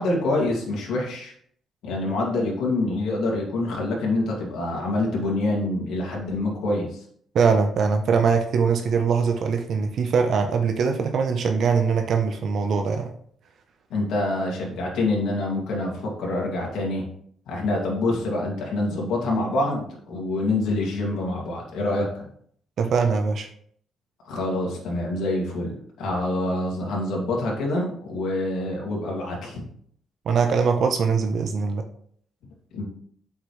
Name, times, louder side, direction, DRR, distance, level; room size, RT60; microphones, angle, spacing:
voice 1, 0.0-1.3 1.8-7.0 13.9-17.0 17.5-22.3 24.2-25.7 26.0-29.6 32.7-32.8, left 2 dB, 80° left, -2 dB, 2.4 m, -26 dB
voice 2, 7.3-13.1 22.8-23.5 30.3-31.8, right 5 dB, 55° right, 5 dB, 0.7 m, -22 dB
7.8 x 5.9 x 3.2 m, 0.62 s
cardioid pair, 120°, 0 cm